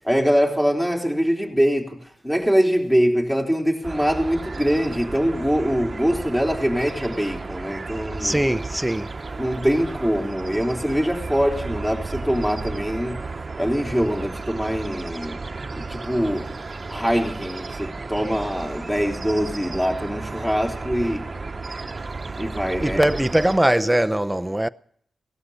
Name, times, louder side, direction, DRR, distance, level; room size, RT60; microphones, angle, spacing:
voice 1, 0.0-8.4 9.4-13.3 13.6-15.4 15.7-16.5 16.9-21.3 22.4-23.0, equal, 5° left, 3.6 m, -23 dB
sound 1, 3.8-23.6, right 3 dB, 40° right, 1.1 m, -33 dB
voice 2, 8.2-9.1 22.8-24.7, right 1 dB, 10° right, 0.7 m, -21 dB
18.5 x 13.0 x 5.6 m
cardioid pair, 60°, 0 cm